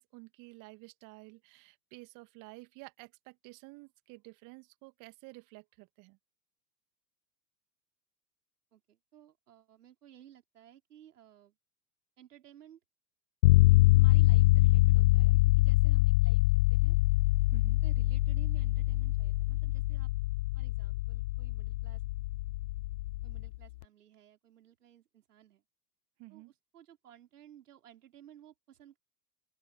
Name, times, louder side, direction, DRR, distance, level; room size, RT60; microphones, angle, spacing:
voice 1, 0.0-6.2 17.5-17.8 26.2-26.5, right 26 dB, 40° right, 2.1 m, -52 dB
voice 2, 8.7-11.5 12.2-12.8 13.9-17.0 17.8-20.1 20.5-22.0 23.2-25.6 26.3-29.0, right 10 dB, 65° right, 5.1 m, -57 dB
sound 1, 13.4-23.6, left 19 dB, 45° left, 0.5 m, -25 dB
open air
figure-of-eight pair, 90°, 48 cm